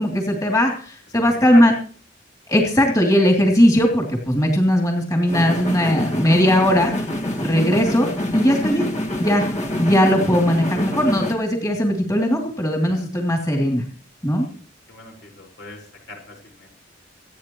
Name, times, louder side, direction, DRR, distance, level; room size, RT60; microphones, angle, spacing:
voice 1, 0.0-1.7 2.5-6.9 7.4-8.9 9.2-9.4 9.8-13.8 14.2-14.5, equal, 20° left, 0 dB, 2.9 m, -18 dB
voice 2, 1.2-1.7 14.4-16.7, left 2 dB, 70° left, 1 dB, 5.2 m, -40 dB
sound 1, 5.3-11.3, left 1 dB, 40° left, 2.0 m, -26 dB
27.0 x 9.5 x 3.1 m, 0.43 s
head